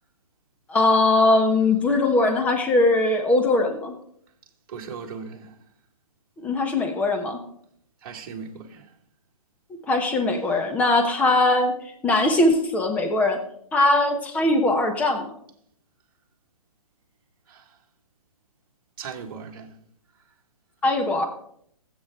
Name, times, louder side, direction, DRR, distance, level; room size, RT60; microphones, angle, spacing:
voice 1, 0.7-3.9 6.4-7.4 9.9-11.7 12.0-13.4 13.7-15.3 20.8-21.3, left 2 dB, 5° left, 1.0 m, -20 dB
voice 2, 4.7-5.6 8.0-8.9 17.5-17.8 19.0-19.8, right 6 dB, 35° right, 2.0 m, -38 dB
20.0 x 8.3 x 3.7 m
hypercardioid pair, 160°, 19 cm